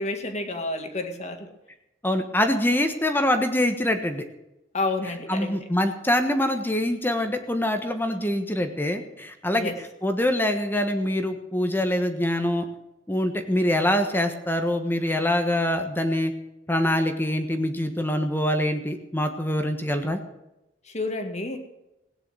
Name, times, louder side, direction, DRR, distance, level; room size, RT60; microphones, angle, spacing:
voice 1, 0.0-1.5 4.7-5.7 9.5-9.8 20.9-21.6, left 2 dB, 35° left, 6 dB, 2.0 m, -30 dB
voice 2, 2.0-4.2 5.3-9.7 10.0-12.6 13.1-16.3 16.7-20.2, left 1 dB, 10° left, 7 dB, 1.3 m, -24 dB
17.5 x 10.0 x 6.3 m, 0.93 s
head